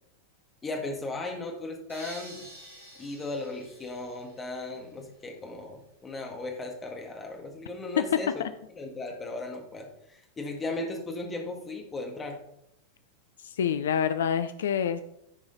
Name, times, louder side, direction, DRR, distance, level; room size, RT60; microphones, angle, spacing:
voice 1, 0.6-2.5 3.0-8.3 8.7-12.4, left 2 dB, 15° left, 1 dB, 2.0 m, -36 dB
sound 1, 1.9-4.9, right 1 dB, 85° left, 2.9 m, -49 dB
voice 2, 13.4-15.0, left 8 dB, 60° left, 11 dB, 0.4 m, -27 dB
14.5 x 4.8 x 4.1 m, 0.79 s
figure-of-eight pair, 90°, 0 cm